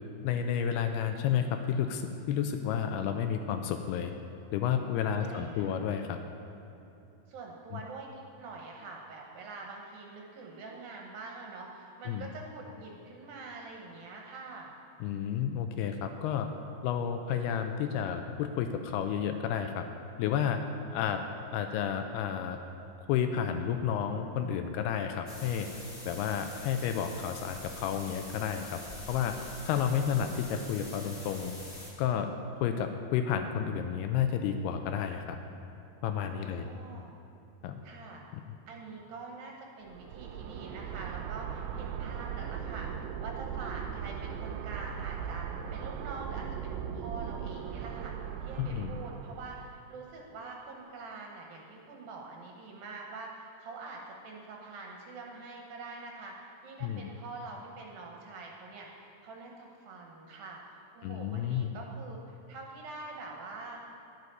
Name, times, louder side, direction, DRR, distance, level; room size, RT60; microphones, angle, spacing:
voice 1, 0.2-4.1 4.5-6.2 7.7-7.8 12.1-12.3 15.0-16.5 16.8-19.9 20.2-20.6 20.9-21.2 21.5-22.6 23.1-25.7 26.1-28.8 29.1-29.4 29.6-31.5 32.0-32.3 32.6-35.4 36.0-36.7 37.6-37.8 38.3-38.4 48.6-49.0 56.8-57.1 61.0-61.7, left 8 dB, 80° left, 6 dB, 2.5 m, -31 dB
voice 2, 5.2-5.8 7.3-14.7 29.8-30.3 36.4-37.2 37.8-38.2 38.7-64.0, right 3 dB, 70° right, 0 dB, 2.5 m, -45 dB
sound 1, 25.3-31.9, left 1 dB, 40° left, 0.9 m, -45 dB
sound 2, 39.9-49.7, right 8 dB, 85° right, 2.7 m, -38 dB
11.0 x 9.7 x 5.4 m, 2.9 s
omnidirectional pair, 4.9 m